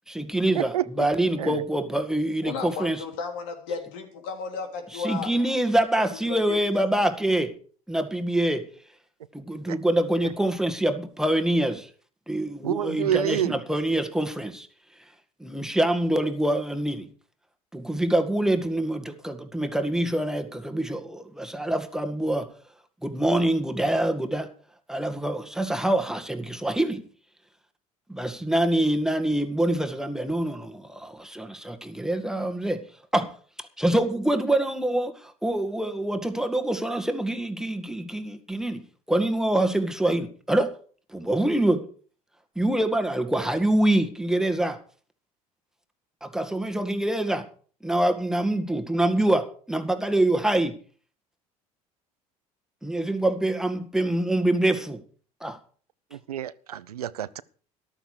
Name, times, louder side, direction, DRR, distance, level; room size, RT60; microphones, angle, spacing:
voice 1, 0.1-3.0 5.0-7.5 7.9-8.7 9.3-11.9 12.3-14.7 15.4-17.1 17.7-22.5 23.0-24.5 24.9-27.0 28.1-32.8 33.1-33.3 33.6-38.8 39.1-40.7 41.1-41.9 42.6-44.8 46.2-47.5 47.8-50.7 52.8-55.0 55.4-55.6, right 1 dB, 5° right, 1.9 m, -25 dB
voice 2, 2.4-5.3 6.0-6.6, left 5 dB, 70° left, 3.2 m, -34 dB
voice 3, 12.6-13.6 56.1-57.4, right 11 dB, 90° right, 0.6 m, -28 dB
14.0 x 12.0 x 4.9 m
hypercardioid pair, 70°, 19 cm